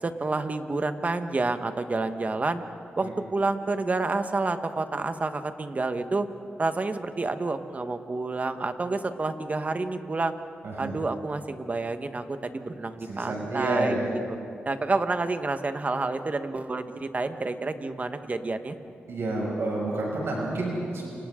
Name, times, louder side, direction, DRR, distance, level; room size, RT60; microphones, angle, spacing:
voice 1, 0.0-2.6 3.0-6.3 6.6-10.3 10.8-13.9 14.6-18.7, right 3 dB, 35° right, 8 dB, 1.3 m, -29 dB
voice 2, 10.6-10.9 13.0-14.1 19.1-21.1, right 2 dB, 80° right, -3 dB, 6.3 m, -29 dB
30.0 x 26.5 x 3.8 m, 2.5 s
cardioid pair, 75°, 4 cm